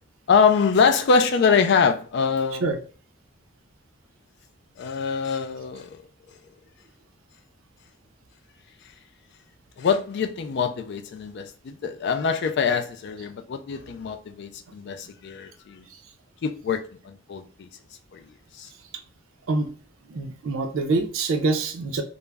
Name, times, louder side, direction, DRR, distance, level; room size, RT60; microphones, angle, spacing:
voice 1, 0.3-2.7 4.8-6.0 9.8-15.8 16.4-17.7 18.1-18.3 18.6-18.7, left 5 dB, 55° left, 0.3 m, -24 dB
voice 2, 20.1-22.0, right 3 dB, 70° right, 0.4 m, -25 dB
2.2 x 2.0 x 3.2 m
head